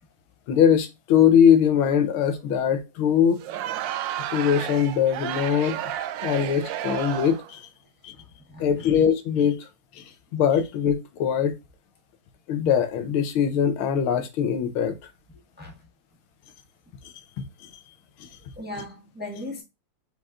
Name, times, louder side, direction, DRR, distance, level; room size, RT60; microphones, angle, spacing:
voice 1, 0.5-3.4 4.3-5.9 6.2-7.7 8.0-8.1 8.6-9.6 10.0-10.1 10.3-11.5 12.5-14.9 17.4-17.5, left 8 dB, 85° left, 1.7 m, -21 dB
Crowd, 3.4-7.5, right 11 dB, 75° right, 1.1 m, -32 dB
voice 2, 8.5-8.9 15.6-15.7 18.6-19.6, left 1 dB, 5° right, 1.1 m, -37 dB
5.1 x 4.2 x 2.3 m
omnidirectional pair, 2.3 m